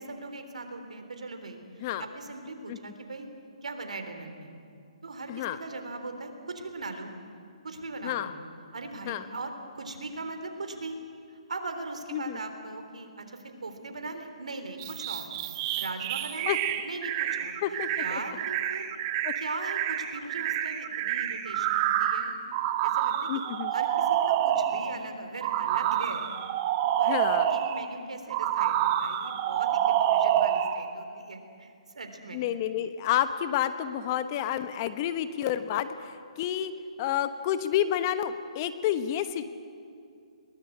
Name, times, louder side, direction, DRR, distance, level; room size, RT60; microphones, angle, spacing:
voice 1, 0.0-1.6 2.0-3.3 3.6-4.5 5.0-7.1 7.6-8.3 8.7-11.0 11.3-15.3 15.8-16.6 16.8-18.9 19.4-22.3 22.8-23.3 23.7-26.3 26.9-32.5, right 3 dB, 80° right, 6 dB, 3.6 m, -40 dB
voice 2, 5.3-5.6 8.0-8.3 9.0-9.3 12.1-12.4 16.5-16.6 17.6-18.2 19.2-19.3 23.3-23.7 27.1-27.5 32.3-36.7 37.0-39.5, left 11 dB, 30° left, 11 dB, 1.1 m, -29 dB
sound 1, 14.8-25.0 25.4-27.9 28.3-30.8, right 11 dB, 30° right, 1.3 m, -28 dB
22.5 x 19.0 x 8.6 m, 2.4 s
hypercardioid pair, 150°, 4 cm